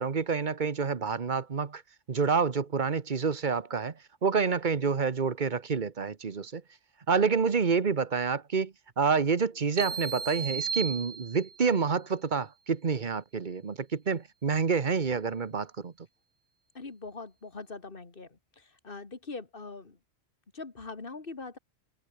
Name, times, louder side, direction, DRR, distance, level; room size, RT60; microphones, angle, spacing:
voice 1, 0.0-1.8 2.1-3.9 4.2-6.6 7.1-15.9, right 5 dB, 45° right, 1.2 m, -28 dB
sound 1, 9.8-11.7, right 5 dB, 80° right, 1.9 m, -35 dB
voice 2, 16.7-20.0 20.5-21.6, left 3 dB, 50° left, 2.4 m, -42 dB
omnidirectional pair, 1.2 m